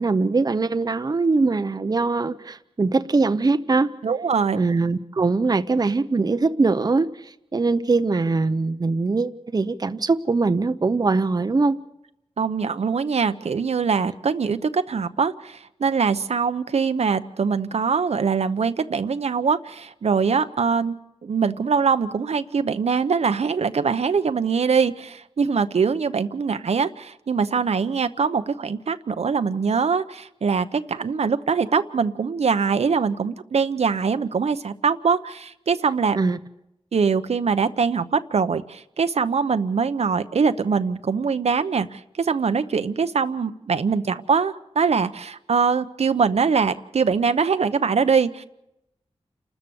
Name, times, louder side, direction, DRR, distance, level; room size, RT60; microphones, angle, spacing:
voice 1, 0.0-3.9 4.5-11.8 36.1-36.4, right 3 dB, 35° right, 10 dB, 0.7 m, -22 dB
voice 2, 4.0-4.6 12.4-21.0 21.2-36.2 36.9-48.4, right 5 dB, 70° right, 10 dB, 0.8 m, -23 dB
29.0 x 13.5 x 7.1 m, 0.85 s
wide cardioid pair, 85°, 11 cm